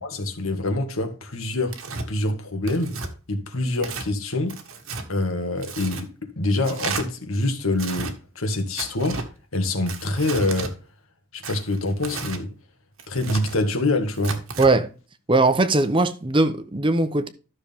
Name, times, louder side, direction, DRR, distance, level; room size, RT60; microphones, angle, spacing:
voice 1, 0.0-1.8 2.1-2.9 3.3-4.5 5.1-6.1 6.4-9.2 9.5-10.7 11.3-12.5 13.1-14.4, left 2 dB, 85° left, 1.9 m, -25 dB
Tearing, 1.7-2.1 2.7-3.1 3.8-4.1 4.5-5.1 5.6-6.0 6.6-7.0 7.7-8.1 8.8-9.3 9.9-10.7 11.4-12.4 13.0-13.6 14.1-14.7, right 4 dB, 90° right, 1.7 m, -33 dB
voice 2, 14.6-14.9 15.3-17.3, right 2 dB, 25° right, 0.8 m, -19 dB
13.0 x 6.5 x 3.6 m
head